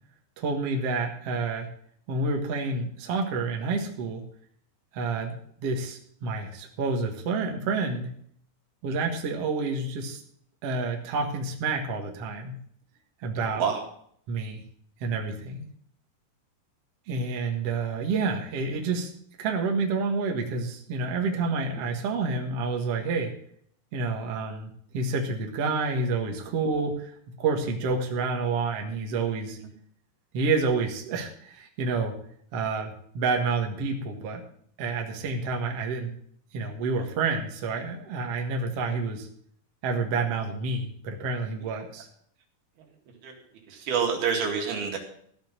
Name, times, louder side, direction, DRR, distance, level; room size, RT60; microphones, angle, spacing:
voice 1, 0.4-1.7 2.1-4.2 4.9-8.1 8.8-10.2 10.6-12.6 13.2-13.6 14.3-14.6 15.0-15.6 17.1-19.1 19.4-23.3 23.9-29.6 30.3-32.1 32.5-34.4 34.8-36.1 36.5-39.3 39.8-42.1, right 4 dB, 50° right, 2 dB, 2.0 m, -29 dB
voice 2, 13.4-13.8 21.8-21.9 29.6-29.7 43.2-43.3 43.7-45.0, right 6 dB, 70° right, 1 dB, 4.0 m, -28 dB
14.5 x 5.8 x 7.4 m, 0.63 s
omnidirectional pair, 4.7 m